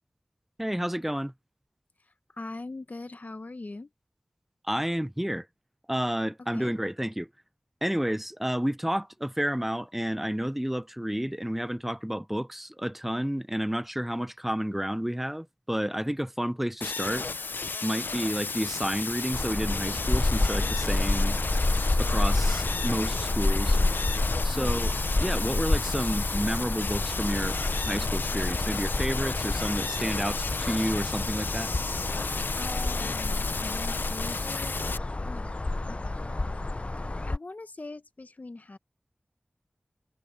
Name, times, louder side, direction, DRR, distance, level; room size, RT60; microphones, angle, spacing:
voice 1, 0.6-1.3 4.6-5.5 5.9-7.3 7.8-17.3 17.8-21.4 22.0-23.8 24.4-24.9 25.2-31.7, equal, 5° right, 0.6 m, -30 dB
voice 2, 2.3-3.9 6.5-6.7 24.5-24.8 32.5-34.8 35.2-35.4 35.9-36.1 37.3-38.8, left 2 dB, 55° left, 1.2 m, -41 dB
sound 1, 16.8-35.0, left 4 dB, 85° left, 0.6 m, -33 dB
sound 2, 19.3-37.4, left 2 dB, 40° left, 0.5 m, -29 dB
wide cardioid pair, 50°, 3 cm